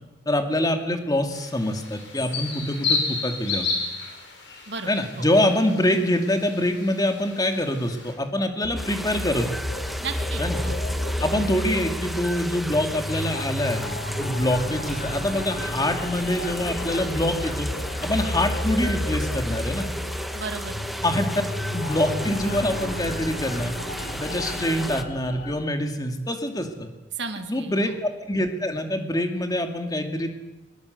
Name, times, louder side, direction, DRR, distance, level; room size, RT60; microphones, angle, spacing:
voice 1, 0.3-3.7 4.9-9.5 10.4-10.6 11.2-17.7 18.0-19.9 21.0-21.3 21.7-23.7 24.1-26.9 27.4-30.3, left 1 dB, 20° left, 6 dB, 2.3 m, -25 dB
sound 1, 1.3-8.1, left 4 dB, 70° left, 5.7 m, -32 dB
sound 2, 8.6-25.6, left 1 dB, 50° left, 2.7 m, -31 dB
sound 3, 8.7-25.0, equal, ahead, 1.2 m, -35 dB
voice 2, 10.0-10.8 20.3-20.8 27.1-28.0, right 4 dB, 70° right, 6 dB, 2.2 m, -34 dB
22.0 x 20.0 x 8.1 m, 1.1 s
head